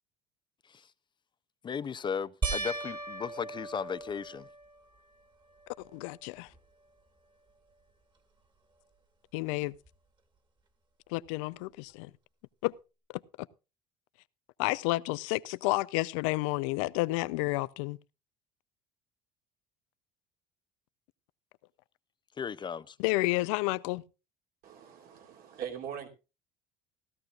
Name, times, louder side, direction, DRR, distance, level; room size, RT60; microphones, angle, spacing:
voice 1, 1.6-4.5 22.4-23.0, left 6 dB, 30° left, 0.5 m, -36 dB
sound 1, 2.4-5.0 5.6-6.2 6.5-6.6 9.9-10.0, right 3 dB, 25° right, 2.0 m, -37 dB
voice 2, 5.9-6.5 9.3-9.7 11.1-12.1 12.6-12.7 13.4-13.5 14.6-18.0 23.0-24.0, left 21 dB, 90° left, 0.5 m, -30 dB
voice 3, 24.6-26.1, right 8 dB, 65° right, 2.9 m, -41 dB
16.5 x 13.0 x 2.4 m
supercardioid pair, 105°, 17 cm